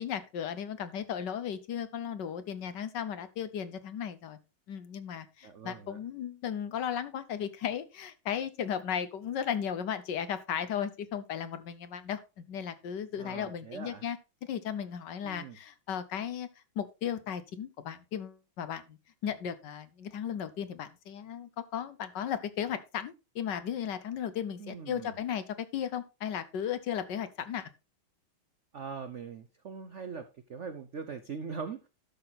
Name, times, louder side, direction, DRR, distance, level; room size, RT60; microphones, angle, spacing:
voice 1, 0.0-4.4 4.7-16.5 16.8-19.0 19.2-27.7, left 8 dB, 65° left, 12 dB, 1.4 m, -35 dB
voice 2, 5.4-6.0 13.2-14.0 15.2-15.6 24.6-25.2 28.7-31.9, right 5 dB, 65° right, 9 dB, 0.7 m, -41 dB
12.0 x 6.3 x 4.0 m, 0.29 s
omnidirectional pair, 2.2 m